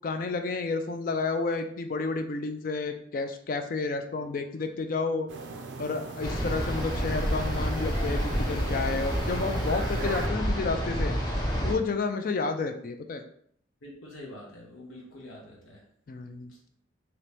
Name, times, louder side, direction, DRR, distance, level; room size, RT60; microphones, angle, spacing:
voice 1, 0.0-5.3 5.8-11.1 11.6-13.2 16.1-16.5, left 4 dB, 45° left, 6 dB, 0.3 m, -31 dB
sound 1, 5.3-10.3, right 4 dB, 65° right, 0.4 m, -39 dB
sound 2, 6.2-11.7, equal, 20° left, 0.7 m, -29 dB
voice 2, 13.8-15.8 16.5-16.6, left 1 dB, 90° left, -3 dB, 0.9 m, -46 dB
2.9 x 2.8 x 3.3 m, 0.64 s
head